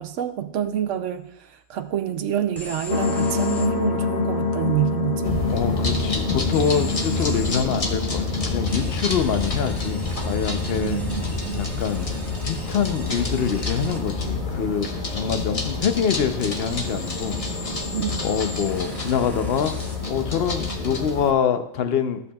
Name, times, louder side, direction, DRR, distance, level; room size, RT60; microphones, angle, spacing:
voice 1, 0.0-5.5 10.8-11.6 17.9-18.3, right 11 dB, 65° right, 9 dB, 0.9 m, -27 dB
sound 1, 2.6-3.7 6.5-7.7 8.7-14.0 16.6-20.0, left 2 dB, ahead, 1.4 m, -40 dB
sound 2, 2.9-8.9, left 4 dB, 70° left, 1.3 m, -26 dB
sound 3, 5.2-21.3, left 3 dB, 25° left, 1.1 m, -28 dB
voice 2, 5.5-11.0 11.5-12.1 12.4-17.4 17.7-17.8 18.2-19.8 20.1-22.2, left 7 dB, 55° left, 9 dB, 0.8 m, -25 dB
14.0 x 8.0 x 2.3 m, 0.74 s
omnidirectional pair, 1.5 m